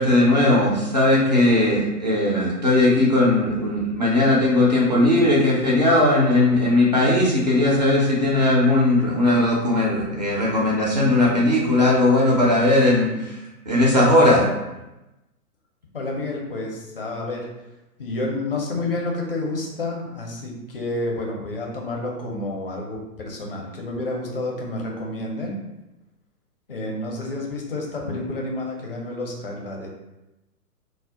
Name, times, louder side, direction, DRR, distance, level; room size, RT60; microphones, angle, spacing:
voice 1, 0.0-14.5, left 1 dB, 30° right, -4 dB, 0.4 m, -18 dB
voice 2, 15.9-17.5 18.0-25.6 26.7-29.9, left 2 dB, 40° left, -1 dB, 0.4 m, -29 dB
2.1 x 2.0 x 3.6 m, 0.98 s
figure-of-eight pair, 120°, 48 cm